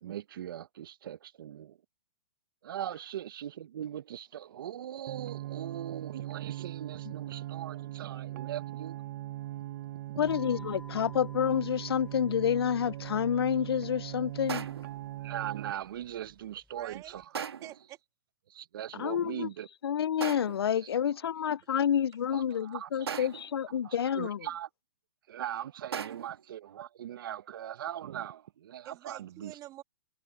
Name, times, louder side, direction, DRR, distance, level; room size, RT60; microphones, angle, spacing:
voice 1, 0.0-1.8 2.6-9.0 15.2-17.2 18.5-19.7 20.8-21.2 22.3-23.3 23.8-24.7 25.3-29.5, right 11 dB, 60° right, 1.3 m, -40 dB
sound 1, 5.1-15.7, right 14 dB, 45° right, 0.9 m, -40 dB
voice 2, 10.2-14.7 19.0-19.5 19.8-24.4, left 9 dB, 80° left, 0.5 m, -29 dB
sound 2, 10.2-17.2, left 2 dB, 5° left, 6.2 m, -55 dB
sound 3, 14.5-15.0 17.3-17.9 20.2-20.8 23.1-23.6 25.9-26.4, right 7 dB, 85° right, 1.7 m, -38 dB
voice 3, 16.7-17.2 17.6-18.0 28.8-29.8, right 15 dB, 25° right, 1.8 m, -47 dB
hypercardioid pair, 145°, 13 cm